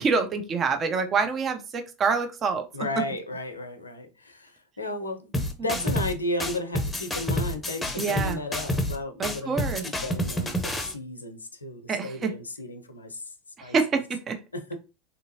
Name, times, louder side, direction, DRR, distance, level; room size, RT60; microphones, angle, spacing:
voice 1, 0.0-2.6 8.0-8.4 9.2-9.8 11.9-12.3 13.6-14.4, right 5 dB, 35° right, 6 dB, 0.5 m, -26 dB
voice 2, 2.7-5.3 5.6-13.3 13.6-13.8 14.5-14.7, left 2 dB, 90° left, 8 dB, 0.5 m, -34 dB
sound 1, 5.3-6.1 6.4-9.0 9.2-10.9, left 1 dB, 10° left, 0.7 m, -28 dB
3.4 x 2.7 x 2.7 m, 0.29 s
figure-of-eight pair, 80°, 0 cm